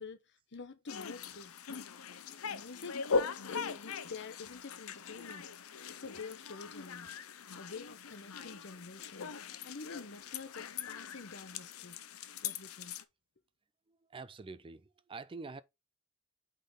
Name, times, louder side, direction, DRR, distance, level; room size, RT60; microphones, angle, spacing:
voice 1, 0.0-1.5 2.5-3.1 3.5-5.5 5.9-7.1 7.5-13.0, left 4 dB, 55° left, 0.9 m, -48 dB
sound 1, 0.9-13.0, left 5 dB, 80° left, 0.7 m, -40 dB
voice 2, 14.1-15.6, right 4 dB, 25° right, 0.4 m, -46 dB
8.4 x 3.8 x 3.9 m
head